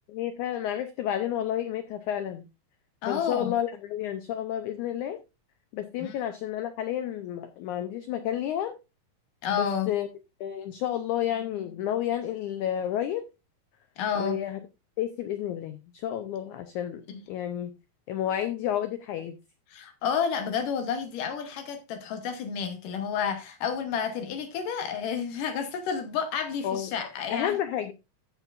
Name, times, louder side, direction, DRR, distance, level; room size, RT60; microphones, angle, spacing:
voice 1, 0.1-2.5 3.1-5.2 5.7-8.8 9.5-10.1 10.4-13.3 14.2-14.6 15.0-17.0 17.3-17.7 18.1-19.4 26.6-26.9 27.3-27.9, left 11 dB, 85° left, 1.7 m, -31 dB
voice 2, 3.0-3.5 6.0-6.1 9.4-9.9 14.0-14.4 17.1-17.2 19.7-27.6, left 7 dB, 70° left, 2.5 m, -30 dB
14.5 x 7.2 x 2.5 m
omnidirectional pair, 4.3 m